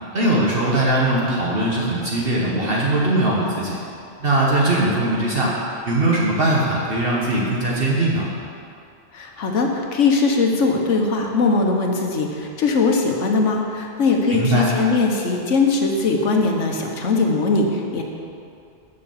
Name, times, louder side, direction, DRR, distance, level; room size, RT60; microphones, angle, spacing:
voice 1, 0.1-3.8 4.2-5.6 5.8-8.3 14.3-14.7, right 1 dB, 50° right, -4 dB, 1.3 m, -20 dB
voice 2, 9.1-18.0, left 3 dB, 80° left, 2 dB, 1.3 m, -20 dB
6.8 x 6.7 x 7.0 m, 2.5 s
omnidirectional pair, 1.2 m